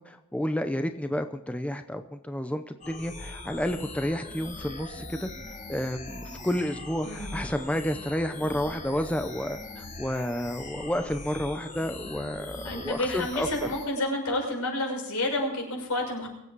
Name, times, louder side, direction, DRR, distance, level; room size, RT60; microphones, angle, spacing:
voice 1, 0.1-5.3 5.7-13.5, equal, 5° left, 7 dB, 0.7 m, -31 dB
sound 1, 2.8-13.9, left 2 dB, 35° left, 5.5 m, -41 dB
voice 2, 7.0-7.5 12.6-16.3, left 1 dB, 75° left, 0 dB, 6.4 m, -30 dB
23.5 x 8.5 x 4.6 m, 0.94 s
head